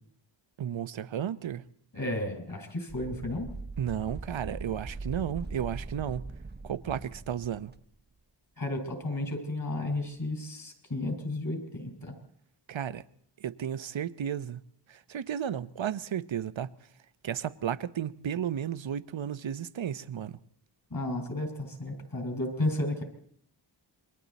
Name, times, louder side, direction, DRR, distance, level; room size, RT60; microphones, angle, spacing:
voice 1, 0.6-1.6 3.8-6.2 6.6-7.7 12.7-13.0 13.4-14.6 14.9-16.7 17.2-20.4, right 9 dB, 70° right, 0.8 m, -33 dB
voice 2, 1.9-3.5 8.6-12.1 20.9-23.0, left 1 dB, 45° left, 5.4 m, -33 dB
sound 1, 2.9-7.8, right 3 dB, 20° right, 0.8 m, -41 dB
27.5 x 23.0 x 4.1 m
wide cardioid pair, 105°, 47 cm